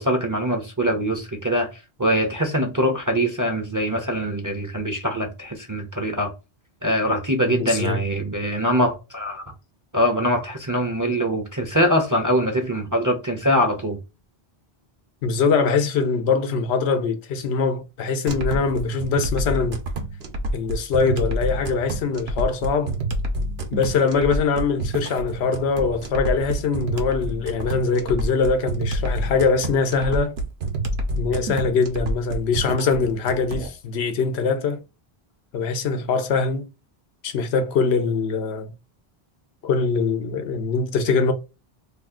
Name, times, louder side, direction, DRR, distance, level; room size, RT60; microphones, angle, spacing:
voice 1, 0.0-6.3 6.8-9.4 9.9-14.0, equal, 25° right, 0.4 m, -23 dB
voice 2, 7.5-8.0 15.2-19.8 20.5-23.0 23.7-30.4 31.2-34.8 35.5-36.7 37.2-38.7 39.6-41.3, left 5 dB, 90° left, 0.9 m, -22 dB
sound 1, 18.3-33.7, right 1 dB, 80° right, 1.0 m, -28 dB
2.7 x 2.4 x 3.6 m
omnidirectional pair, 1.0 m